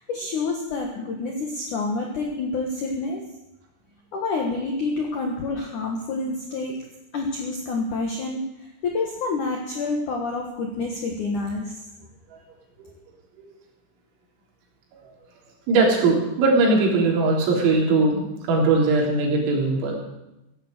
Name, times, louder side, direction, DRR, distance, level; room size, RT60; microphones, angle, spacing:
voice 1, 0.0-3.3 4.1-6.9 7.1-8.4 8.8-11.8, left 3 dB, 70° left, 1 dB, 1.9 m, -28 dB
voice 2, 15.7-20.0, right 3 dB, 85° right, -1 dB, 6.1 m, -20 dB
15.5 x 11.0 x 7.9 m, 0.93 s
omnidirectional pair, 5.9 m